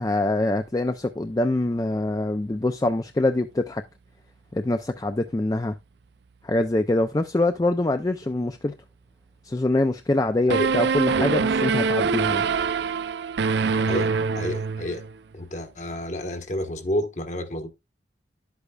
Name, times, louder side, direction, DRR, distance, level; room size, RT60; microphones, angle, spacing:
voice 1, 0.0-3.8 4.5-5.7 6.4-8.7 9.4-12.5, left 2 dB, 20° left, 0.4 m, -24 dB
sound 1, 10.5-15.1, right 5 dB, 70° right, 0.5 m, -24 dB
voice 2, 13.9-15.0 15.3-17.7, left 1 dB, 40° left, 1.2 m, -30 dB
11.0 x 8.2 x 2.3 m
head